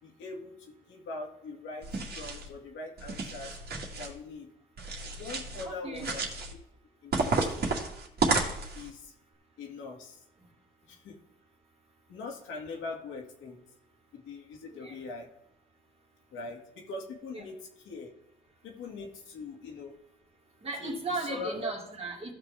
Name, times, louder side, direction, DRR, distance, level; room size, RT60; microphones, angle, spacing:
voice 1, 0.0-1.9 2.1-3.5 4.0-4.5 5.2-6.2 7.0-7.7 8.7-9.1 9.6-10.2 10.9-11.1 12.1-13.6 14.1-15.3 16.3-17.6 17.8-18.1 18.6-20.0 20.8-21.0 21.3-21.7, left 3 dB, 85° left, -1 dB, 2.2 m, -41 dB
sound 1, 1.8-2.5 3.0-4.1 4.8-5.7 5.9-6.5 7.1-8.9, right 3 dB, 55° right, 2.2 m, -31 dB
voice 2, 5.6-6.1 14.7-15.0 17.3-17.4 20.6-22.3, right 3 dB, 30° right, 0 dB, 2.5 m, -36 dB
15.5 x 6.0 x 3.6 m, 0.76 s
cardioid pair, 90°, 20 cm